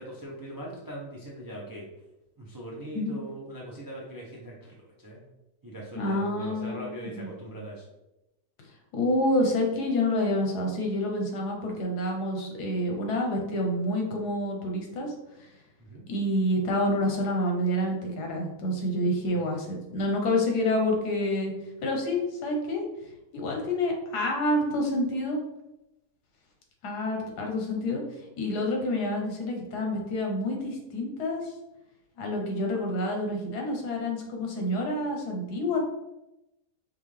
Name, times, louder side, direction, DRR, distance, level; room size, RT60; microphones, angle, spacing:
voice 1, 0.0-1.9 2.4-5.2 5.6-7.8 15.8-16.0 19.3-19.4, right 1 dB, 30° right, -4 dB, 0.4 m, -41 dB
voice 2, 5.9-7.3 8.9-15.1 15.4-15.5 16.1-21.5 21.8-22.8 23.3-25.4 26.8-28.0 28.4-31.5 32.2-35.8, left 1 dB, 85° left, 1 dB, 1.5 m, -28 dB
5.4 x 2.5 x 3.3 m, 0.93 s
omnidirectional pair, 1.7 m